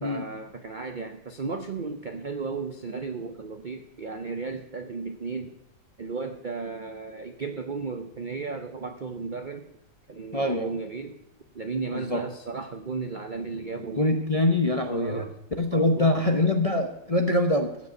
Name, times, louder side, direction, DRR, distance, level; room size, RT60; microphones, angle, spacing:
voice 1, 0.0-5.5 6.0-9.7 10.1-11.2 11.5-14.0 14.9-15.3 15.7-16.1, right 4 dB, 70° right, 7 dB, 0.4 m, -34 dB
voice 2, 10.3-10.8 11.9-12.2 13.9-15.3 15.6-17.7, left 1 dB, 30° left, 4 dB, 0.6 m, -24 dB
15.0 x 5.3 x 8.2 m, 0.86 s
omnidirectional pair, 1.9 m